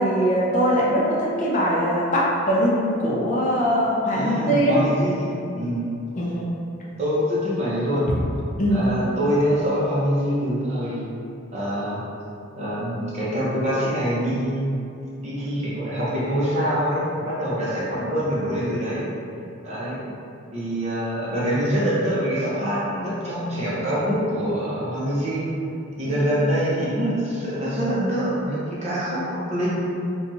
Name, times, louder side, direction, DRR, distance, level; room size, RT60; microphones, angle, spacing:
voice 1, 0.0-4.8 6.1-6.5 8.6-8.8 26.0-26.2, equal, 35° left, -5 dB, 0.4 m, -21 dB
voice 2, 4.1-5.9 7.0-8.1 8.7-11.0 11.5-12.0 12.5-14.7 15.2-19.1 19.6-20.0 20.5-25.4 26.0-29.8, equal, 30° right, -8 dB, 0.7 m, -25 dB
2.8 x 2.3 x 3.9 m, 2.6 s
head